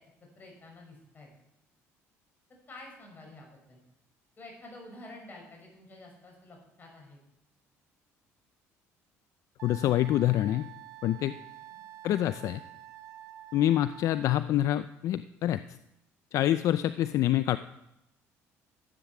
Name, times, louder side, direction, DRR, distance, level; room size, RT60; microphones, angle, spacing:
voice 1, 0.4-1.3 2.7-3.8 4.4-7.2 11.7-11.8, left 2 dB, 30° left, 1 dB, 6.5 m, -49 dB
voice 2, 9.6-10.7 11.0-11.3 12.0-12.6 13.5-15.8 16.3-17.6, left 13 dB, 65° left, 13 dB, 0.5 m, -26 dB
Wind instrument woodwind instrument, 9.6-14.5, right 13 dB, 70° right, 0.8 m, -48 dB
13.5 x 9.0 x 7.2 m, 0.85 s
cardioid pair, 100°, 6 cm